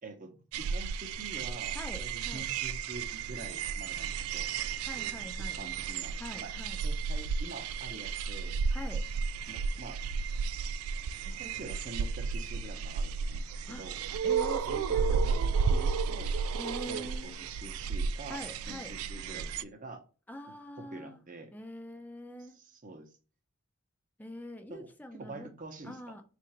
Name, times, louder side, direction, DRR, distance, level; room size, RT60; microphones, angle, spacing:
voice 1, 0.0-4.5 5.6-8.6 9.5-10.0 11.2-13.9 14.6-16.4 16.9-20.0 20.9-21.5 22.6-23.1 24.7-26.1, right 2 dB, 40° right, 0.8 m, -46 dB
sound 1, 0.5-19.6, right 5 dB, 85° right, 0.3 m, -33 dB
voice 2, 1.7-2.4 4.8-5.6 6.2-6.8 8.7-9.1 13.7-13.9 14.2-15.2 16.5-17.4 18.3-18.9 20.3-21.2 21.5-22.6 24.2-25.5 25.8-26.2, left 1 dB, 10° left, 0.4 m, -44 dB
3.7 x 2.5 x 4.4 m
head